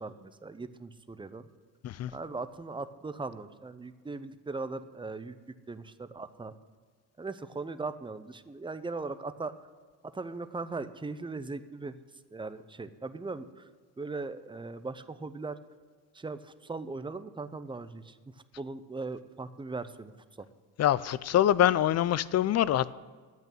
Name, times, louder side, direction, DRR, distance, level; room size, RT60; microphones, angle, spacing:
voice 1, 0.0-1.5 2.1-5.4 5.7-6.5 7.2-9.5 10.0-12.0 12.3-13.7 14.0-15.6 16.1-20.5, right 3 dB, 10° right, 12 dB, 0.6 m, -39 dB
voice 2, 20.8-22.9, left 11 dB, 40° left, 19 dB, 0.4 m, -25 dB
8.8 x 8.2 x 9.0 m, 1.5 s
cardioid pair, 90°, 41 cm